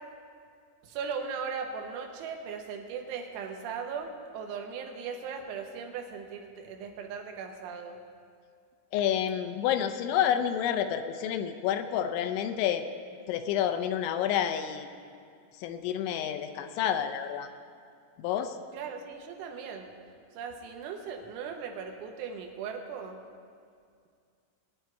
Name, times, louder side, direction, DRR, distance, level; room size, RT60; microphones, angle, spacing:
voice 1, 0.8-8.0 18.7-20.0 20.3-23.2, right 6 dB, 80° right, 3 dB, 3.3 m, -38 dB
voice 2, 8.9-12.8 13.3-14.9 15.6-17.5 18.2-18.6, left 9 dB, 80° left, 8 dB, 2.8 m, -29 dB
20.5 x 9.4 x 4.6 m, 2.2 s
omnidirectional pair, 5.7 m